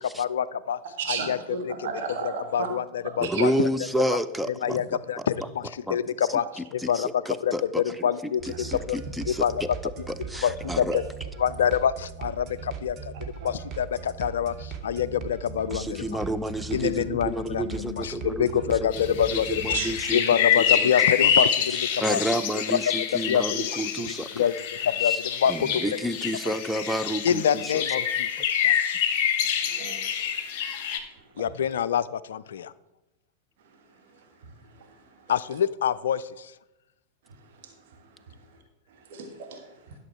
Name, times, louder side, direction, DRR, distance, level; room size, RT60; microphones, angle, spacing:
voice 1, 0.0-0.8 1.1-1.4 1.6-1.9 2.2-3.7 4.5-7.1 7.4-9.0 9.2-9.6 10.4-11.0 11.4-13.1 13.4-16.2 16.7-19.8 20.1-22.2 22.7-22.8 23.3-23.8 24.4-24.5 24.8-25.8 27.2-28.4 28.6-29.0 31.4-32.7 35.3-36.5, left 9 dB, 60° left, 16 dB, 0.4 m, -26 dB
voice 2, 1.0-2.7 3.3-3.5 13.4-13.5 19.7-20.1 29.6-30.0 39.1-39.6, right 6 dB, 55° right, 2 dB, 1.6 m, -33 dB
voice 3, 3.2-4.8 5.2-5.3 5.9-6.0 6.3-7.8 8.4-11.0 15.7-18.5 18.8-19.0 19.3-20.2 20.6-21.1 21.7-24.5 25.0-25.2 25.5-27.8, equal, ahead, 10 dB, 0.5 m, -30 dB
sound 1, 8.4-20.0, right 6 dB, 35° right, 1.0 m, -39 dB
sound 2, 18.9-31.0, left 8 dB, 45° left, 1.0 m, -26 dB
11.5 x 6.3 x 4.5 m, 0.97 s
figure-of-eight pair, 90°, 0 cm